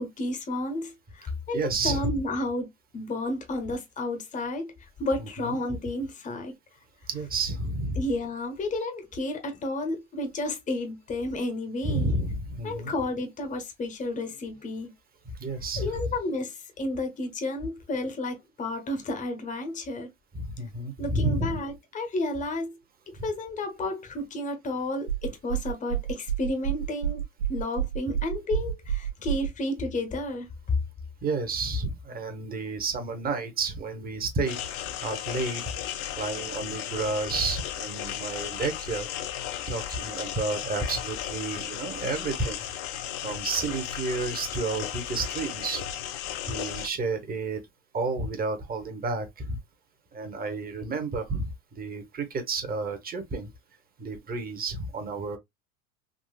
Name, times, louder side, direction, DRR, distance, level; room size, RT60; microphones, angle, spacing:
voice 1, 0.0-2.7 2.9-6.5 8.0-12.1 12.6-14.9 15.8-20.1 21.0-22.8 23.1-27.2 27.5-30.5, left 1 dB, 20° left, 0.9 m, -32 dB
voice 2, 1.5-2.1 5.2-5.6 7.1-8.0 11.8-12.9 15.4-15.9 20.4-21.6 31.2-35.6 36.2-39.1 39.7-42.6 43.2-45.8 46.4-47.6 47.9-49.6 50.1-53.5 54.0-55.4, right 3 dB, 20° right, 1.0 m, -31 dB
sound 1, 25.1-29.5, right 9 dB, 65° right, 0.8 m, -29 dB
sound 2, 34.5-46.9, left 11 dB, 50° left, 0.7 m, -35 dB
3.8 x 2.3 x 2.3 m
hypercardioid pair, 100°, 41 cm